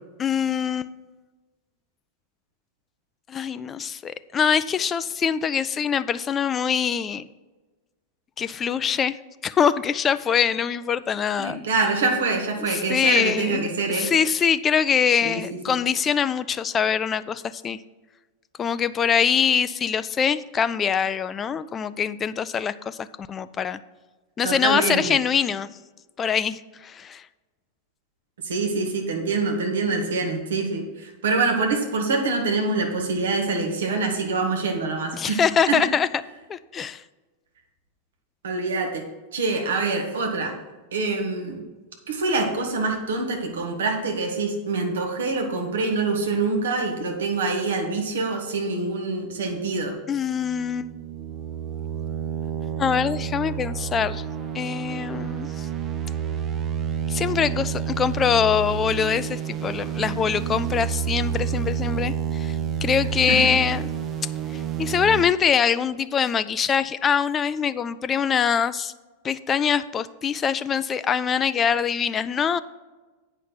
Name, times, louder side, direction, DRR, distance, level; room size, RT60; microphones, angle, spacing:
voice 1, 0.2-0.9 3.3-7.2 8.4-9.2 9.4-11.6 12.7-13.7 13.9-17.8 18.6-23.8 24.4-25.7 26.2-27.2 35.1-36.1 36.5-37.0 50.1-50.9 52.8-54.2 54.5-55.7 57.1-62.5 62.8-63.8 64.5-68.9 69.2-72.6, left 7 dB, 25° left, 14 dB, 0.3 m, -23 dB
voice 2, 11.4-14.1 15.2-15.8 24.4-25.0 28.4-35.4 35.7-35.8 38.4-39.0 39.3-40.5 40.9-41.7 42.1-49.9 63.3-63.5, right 3 dB, 65° right, 3 dB, 1.4 m, -25 dB
sound 1, 50.0-65.2, right 9 dB, 30° right, 0.7 m, -29 dB
8.2 x 5.8 x 6.0 m, 1.2 s
figure-of-eight pair, 90°, 0 cm